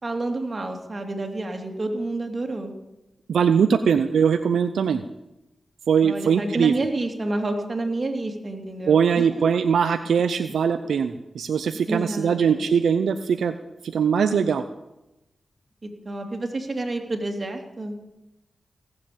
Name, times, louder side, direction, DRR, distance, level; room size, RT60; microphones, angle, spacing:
voice 1, 0.0-2.7 6.0-9.4 11.9-12.7 15.8-17.9, right 2 dB, 40° right, 3 dB, 2.9 m, -29 dB
voice 2, 3.3-5.0 5.9-6.7 8.9-13.6 13.8-14.6, right 7 dB, 85° right, 10 dB, 0.6 m, -21 dB
17.5 x 7.7 x 8.7 m, 0.94 s
cardioid pair, 50°, 0 cm